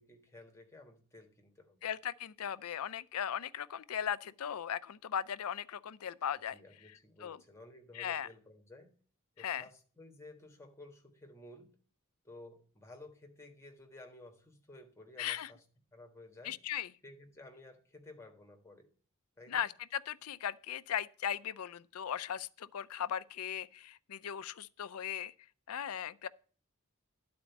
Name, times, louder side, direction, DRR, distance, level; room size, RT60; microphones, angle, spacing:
voice 1, 0.0-1.9 6.5-8.9 9.4-11.7 12.2-15.6 15.9-16.6 17.0-18.9 19.4-19.6, left 2 dB, 15° left, 1.4 m, -54 dB
voice 2, 1.8-6.6 7.2-7.4 7.9-8.3 9.4-9.6 15.2-15.5 16.4-16.9 19.5-25.3 25.7-26.3, left 9 dB, 75° left, 0.4 m, -38 dB
11.5 x 4.3 x 7.1 m
head